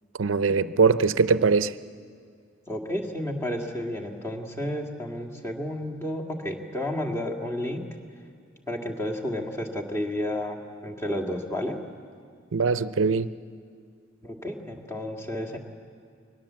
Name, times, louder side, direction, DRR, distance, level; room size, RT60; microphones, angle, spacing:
voice 1, 0.2-1.7 12.5-13.3, right 4 dB, 85° right, 14 dB, 0.6 m, -21 dB
voice 2, 2.7-7.8 8.7-11.8 14.2-15.6, left 1 dB, 15° left, 0 dB, 2.0 m, -31 dB
23.0 x 19.5 x 7.5 m, 2.2 s
head